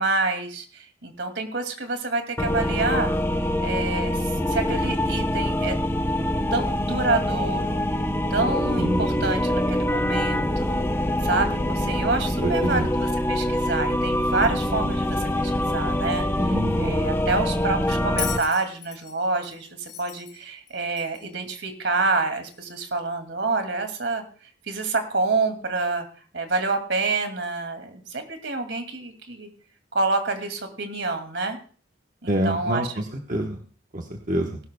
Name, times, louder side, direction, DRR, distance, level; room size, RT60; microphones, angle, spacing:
voice 1, 0.0-3.1 3.6-5.8 6.5-7.9 8.3-10.8 11.2-24.2 24.7-26.1 26.3-29.5 29.9-31.6 32.2-32.9, right 3 dB, 65° right, 6 dB, 2.4 m, -27 dB
sound 1, 2.4-18.4, left 1 dB, 10° left, 0.7 m, -24 dB
voice 2, 8.8-9.4 12.4-12.9 16.4-17.1 32.3-33.6 33.9-34.6, right 1 dB, 40° right, 2 dB, 1.2 m, -27 dB
Bell, 18.2-21.4 22.5-22.6, left 11 dB, 65° left, 2.6 m, -37 dB
19.5 x 12.0 x 2.3 m, 0.42 s
head